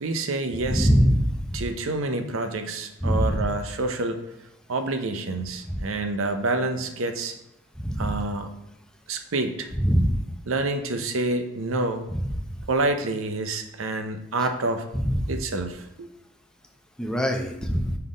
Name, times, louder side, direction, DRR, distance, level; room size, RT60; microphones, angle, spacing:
voice 1, 0.0-0.9 1.5-4.2 4.7-7.3 8.0-8.5 9.1-9.7 10.5-12.0 12.7-14.9 15.3-16.1, right 2 dB, 65° right, 7 dB, 0.7 m, -28 dB
voice 2, 0.6-1.3 3.0-3.4 5.7-5.8 7.8-8.1 9.7-10.1 14.9-15.2 17.0-18.0, equal, 5° left, 2 dB, 0.6 m, -22 dB
5.7 x 4.0 x 5.0 m, 0.87 s
head